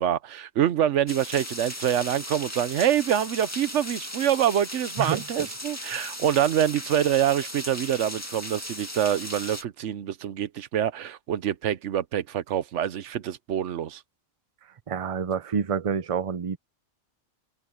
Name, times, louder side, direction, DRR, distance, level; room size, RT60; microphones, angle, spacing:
voice 1, 0.0-14.0, right 10 dB, 65° right, 1.0 m, -26 dB
sound 1, 1.1-9.6, left 1 dB, 10° left, 2.2 m, -37 dB
voice 2, 14.9-16.6, right 6 dB, 40° right, 0.5 m, -28 dB
omnidirectional pair, 1.4 m